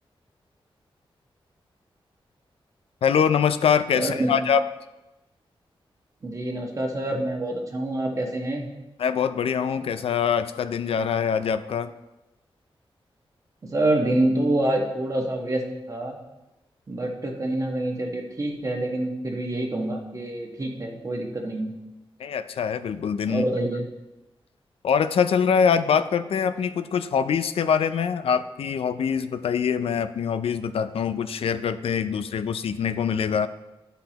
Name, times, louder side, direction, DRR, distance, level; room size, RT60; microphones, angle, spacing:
voice 1, 3.0-4.6 9.0-11.9 22.2-23.4 24.8-33.5, left 7 dB, 85° left, 12 dB, 0.4 m, -24 dB
voice 2, 3.9-4.3 6.2-8.7 13.6-15.6 15.9-16.2 16.9-21.7 23.3-23.8, right 1 dB, 35° right, 1 dB, 1.3 m, -26 dB
12.0 x 5.6 x 2.9 m, 1.0 s
wide cardioid pair, 145°, 10 cm